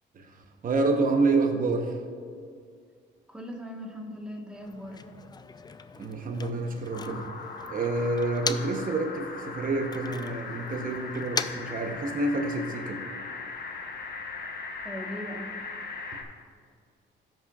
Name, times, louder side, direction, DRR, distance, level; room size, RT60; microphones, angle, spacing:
voice 1, 0.1-2.0 6.0-7.3 7.7-13.0, right 3 dB, 45° right, 3 dB, 0.9 m, -28 dB
voice 2, 3.3-5.0 14.7-15.6, equal, 5° right, 1 dB, 1.3 m, -39 dB
Motor vehicle (road), 4.5-8.9 9.2-12.5, left 5 dB, 20° left, 0.4 m, -39 dB
sound 1, 6.9-16.2, left 4 dB, 55° left, 1.1 m, -39 dB
14.5 x 6.2 x 2.4 m, 2.1 s
cardioid pair, 90°, 20 cm